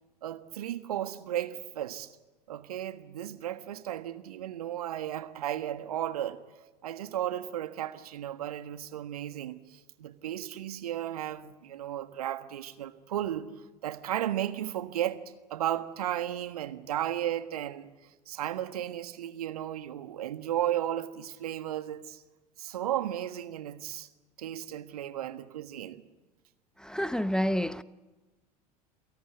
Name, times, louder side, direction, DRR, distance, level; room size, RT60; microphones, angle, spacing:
voice 1, 0.2-2.1 2.5-6.4 6.8-13.5 13.8-15.2 15.5-17.9 18.3-22.2 22.6-24.1 24.4-26.0, right 12 dB, 70° right, 1.5 m, -34 dB
voice 2, 26.8-27.8, equal, 5° left, 0.7 m, -29 dB
28.5 x 18.0 x 8.2 m
figure-of-eight pair, 75°, 20 cm